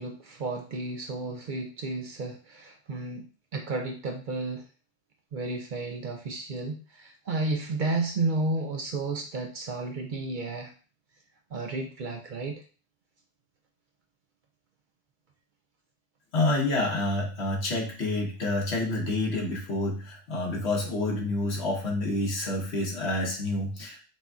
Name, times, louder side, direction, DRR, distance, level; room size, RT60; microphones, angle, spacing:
voice 1, 0.0-3.2 3.5-4.6 5.3-10.7 11.5-12.6, right 2 dB, 55° right, 3 dB, 0.6 m, -32 dB
voice 2, 16.3-24.0, left 2 dB, 75° left, -1 dB, 1.4 m, -28 dB
6.0 x 2.6 x 2.3 m, 0.37 s
omnidirectional pair, 1.1 m